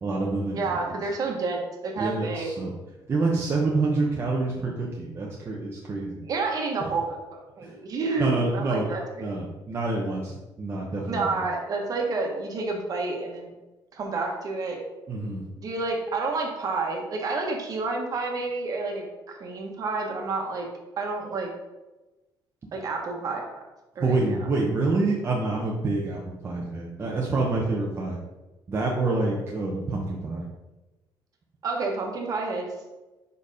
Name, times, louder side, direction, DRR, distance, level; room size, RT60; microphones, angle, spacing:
voice 1, 0.0-0.6 0.9-1.0 2.0-2.7 3.1-6.2 6.8-6.9 7.6-7.7 8.2-8.9 9.2-11.5 15.1-15.4 24.0-28.2 28.7-30.4, right 3 dB, 30° right, -3 dB, 0.9 m, -27 dB
voice 2, 0.5-2.5 6.3-9.3 11.1-13.5 13.9-14.8 15.6-20.7 21.0-21.5 22.7-23.6 23.9-24.4 31.6-32.7, right 3 dB, 45° right, 1 dB, 1.3 m, -29 dB
5.4 x 4.5 x 4.9 m, 1.1 s
cardioid pair, 150°, 8 cm